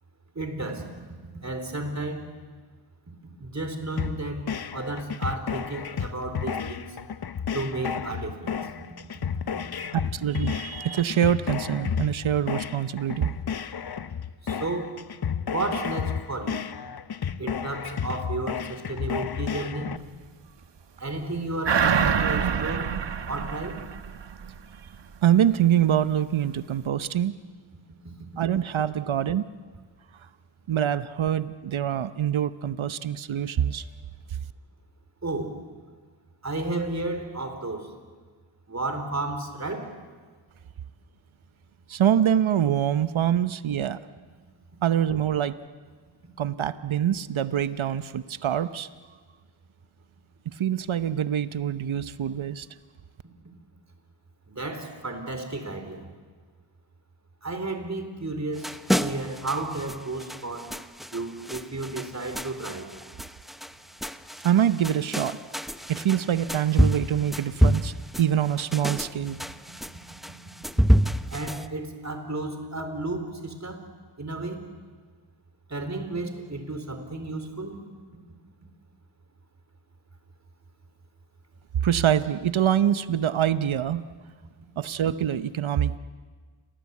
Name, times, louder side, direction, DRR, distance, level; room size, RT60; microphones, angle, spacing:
voice 1, 0.3-0.9 1.4-2.3 3.4-7.0 7.5-8.7 14.4-15.0 15.5-16.6 17.4-19.9 21.0-22.9 23.3-23.8 28.0-28.1 35.2-35.6 36.4-37.9 38.7-39.9 54.5-56.0 57.4-60.7 61.1-63.0 71.3-73.8 74.2-74.6 75.7-77.8, right 2 dB, 35° right, 7 dB, 4.2 m, -32 dB
sound 1, 4.0-20.0, left 7 dB, 55° left, 0.9 m, -32 dB
voice 2, 10.1-13.3 25.2-27.4 28.4-29.5 30.7-33.9 41.9-44.0 44.8-45.6 46.4-48.9 50.5-52.7 64.4-65.4 65.9-69.4 81.8-84.0 84.8-86.0, right 10 dB, 85° right, 13 dB, 0.9 m, -25 dB
sound 2, 21.6-24.6 24.9-25.0, right 7 dB, 65° right, 1.2 m, -26 dB
sound 3, 58.6-71.7, equal, ahead, 0.9 m, -28 dB
29.5 x 23.0 x 8.5 m, 1.5 s
wide cardioid pair, 70°, 46 cm